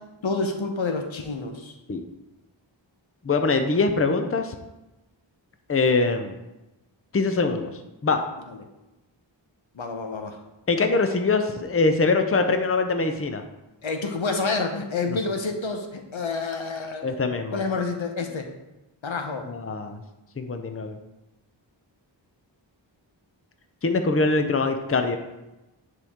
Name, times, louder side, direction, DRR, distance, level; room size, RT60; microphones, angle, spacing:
voice 1, 0.2-1.7 9.8-10.4 13.8-18.5 19.0-19.5, left 3 dB, 85° left, 4 dB, 1.0 m, -28 dB
voice 2, 3.2-4.6 5.7-6.4 7.1-7.7 8.0-8.2 10.7-13.4 15.1-15.2 17.0-17.6 19.4-20.0 20.4-21.0 23.8-25.2, left 3 dB, 30° left, 6 dB, 0.7 m, -23 dB
9.6 x 4.6 x 3.7 m, 1.0 s
wide cardioid pair, 75°, 46 cm